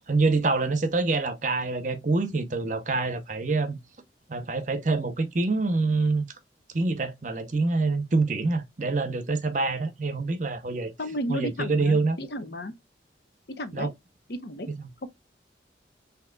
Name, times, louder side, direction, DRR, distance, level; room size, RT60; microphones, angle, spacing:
voice 1, 0.1-3.8 4.3-6.2 6.7-10.9 11.3-12.2 13.7-13.9, right 3 dB, 45° right, 0.7 m, -26 dB
voice 2, 11.0-12.7 13.5-13.9 14.3-14.7 15.0-15.1, equal, 60° left, 0.8 m, -33 dB
6.3 x 2.8 x 2.2 m
head